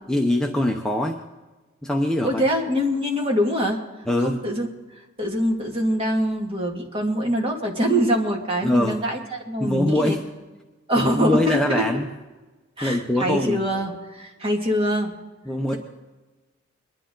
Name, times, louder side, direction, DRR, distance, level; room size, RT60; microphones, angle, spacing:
voice 1, 0.1-1.2 1.8-2.4 4.1-4.4 8.6-9.0 9.6-10.2 11.0-12.1 12.8-13.6 15.5-15.7, left 1 dB, 5° left, 1 dB, 0.8 m, -23 dB
voice 2, 2.2-3.8 4.2-4.7 5.2-10.2 10.9-11.8 12.8-15.1, equal, 25° right, 0 dB, 2.2 m, -24 dB
23.5 x 11.0 x 3.8 m, 1.2 s
head